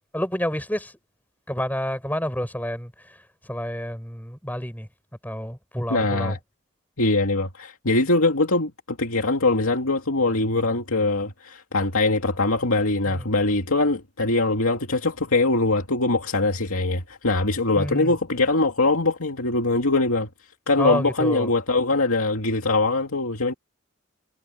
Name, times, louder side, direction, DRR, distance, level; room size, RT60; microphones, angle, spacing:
voice 1, 0.1-0.9 1.5-2.9 3.5-4.9 5.2-6.4 13.1-13.3 17.8-18.1 20.8-21.5, equal, 10° left, 7.7 m, -29 dB
voice 2, 5.9-6.4 7.0-20.3 20.7-23.5, left 2 dB, 80° left, 2.6 m, -22 dB
head